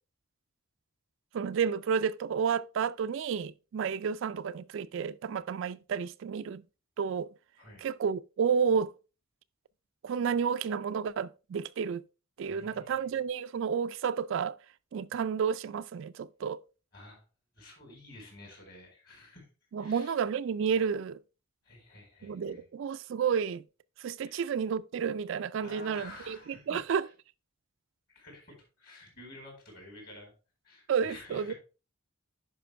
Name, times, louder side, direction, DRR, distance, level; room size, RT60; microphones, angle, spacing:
voice 1, 1.3-6.6 7.0-7.3 7.8-8.9 10.0-12.0 12.4-14.6 14.9-16.6 19.7-21.2 22.2-23.6 24.0-27.1 30.9-31.5, right 6 dB, 60° right, 0.3 m, -31 dB
voice 2, 12.5-13.2 16.9-17.2 17.5-19.5 19.8-20.1 21.6-22.6 24.3-24.4 25.6-26.8 28.1-30.3 30.6-31.6, left 2 dB, 45° left, 4.4 m, -51 dB
10.0 x 5.3 x 3.3 m
head